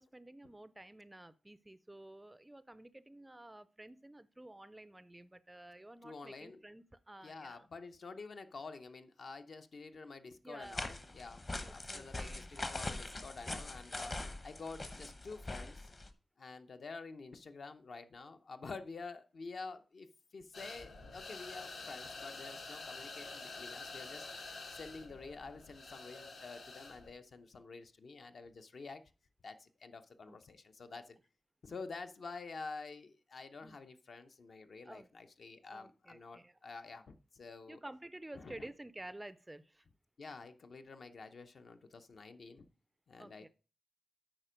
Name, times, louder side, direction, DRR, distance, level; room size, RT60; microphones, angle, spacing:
voice 1, 0.0-7.7 10.4-10.8 11.6-12.6 25.1-25.2 30.3-30.4 33.6-33.8 34.8-35.1 35.7-36.5 37.7-39.9 43.2-43.5, right 1 dB, 10° right, 15 dB, 0.4 m, -52 dB
voice 2, 6.0-6.6 7.2-14.1 14.4-15.9 16.4-29.0 29.4-31.2 31.6-37.8 38.3-38.7 40.2-42.7 43.1-43.5, left 4 dB, 55° left, 8 dB, 0.7 m, -49 dB
sound 1, 10.6-16.1, left 2 dB, 30° left, 0.9 m, -43 dB
sound 2, 20.5-27.1, left 3 dB, 75° left, 1.9 m, -48 dB
8.8 x 5.1 x 5.0 m, 0.35 s
wide cardioid pair, 140°, 0 cm